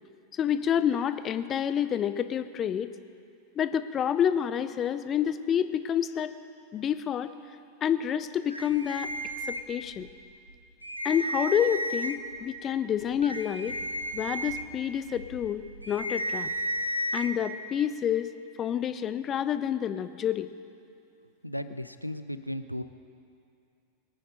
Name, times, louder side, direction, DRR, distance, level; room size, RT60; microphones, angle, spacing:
voice 1, 0.3-2.9 3.6-6.3 6.7-7.3 7.8-9.1 9.5-10.1 11.0-13.8 14.1-16.5 17.1-18.3 18.6-20.5, left 9 dB, 25° left, 12 dB, 0.6 m, -28 dB
sound 1, 8.5-10.1 10.5-10.6 10.8-12.4 12.9-17.3, right 1 dB, 85° right, 0.8 m, -33 dB
voice 2, 21.4-22.8, equal, 90° left, 11 dB, 0.6 m, -35 dB
22.5 x 9.5 x 5.1 m, 2.5 s
figure-of-eight pair, 90°, 0 cm